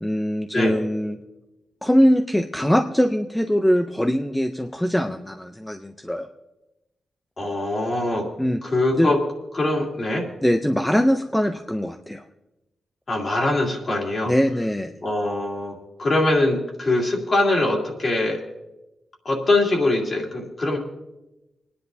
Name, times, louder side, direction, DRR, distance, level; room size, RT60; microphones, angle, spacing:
voice 1, 0.0-1.2 1.8-6.3 8.4-8.6 9.0-9.1 10.4-12.2 14.3-14.9, equal, 5° left, 6 dB, 0.5 m, -22 dB
voice 2, 7.4-8.2 8.6-9.2 9.5-10.2 13.1-14.3 15.0-18.4 19.2-20.8, left 2 dB, 35° left, -1 dB, 2.6 m, -22 dB
29.0 x 10.0 x 2.7 m, 1.0 s
wide cardioid pair, 135°, 0 cm